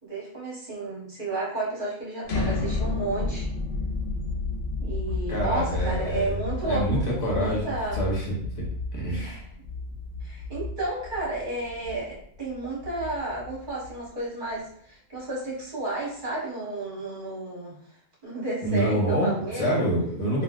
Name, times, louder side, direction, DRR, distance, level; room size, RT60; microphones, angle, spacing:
voice 1, 0.0-3.5 4.8-8.0 9.2-9.4 10.2-17.8 18.2-19.8, right 2 dB, 40° right, -7 dB, 1.4 m, -32 dB
sound 1, 2.2-14.1, left 3 dB, 60° left, 0.5 m, -32 dB
voice 2, 5.3-6.4 6.6-8.6 8.9-9.4 18.6-20.4, right 1 dB, 35° left, -5 dB, 1.0 m, -27 dB
3.3 x 2.3 x 2.4 m, 0.65 s
omnidirectional pair, 1.3 m